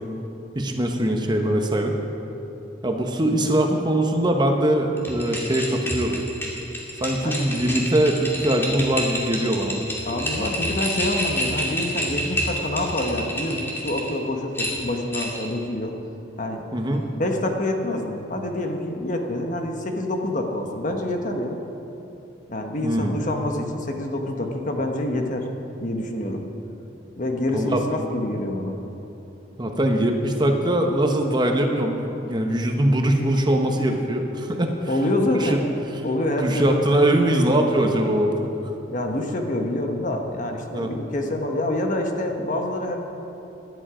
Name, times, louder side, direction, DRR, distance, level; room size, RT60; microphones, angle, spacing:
voice 1, 0.5-2.0 2.8-6.2 7.0-9.9 16.7-17.0 22.8-23.2 27.5-27.8 29.6-34.9 35.4-35.6 36.4-38.3 40.7-40.9, right 1 dB, 25° right, 3 dB, 1.1 m, -22 dB
sound 1, 5.0-14.1 14.5-15.5, equal, 15° left, 2.3 m, -28 dB
voice 2, 10.1-15.9 16.4-16.6 17.1-21.6 22.5-25.5 25.8-26.4 27.2-28.8 34.9-35.7 36.0-37.0 38.9-43.0, left 1 dB, 45° left, 3 dB, 1.3 m, -26 dB
17.5 x 11.5 x 5.0 m, 3.0 s
head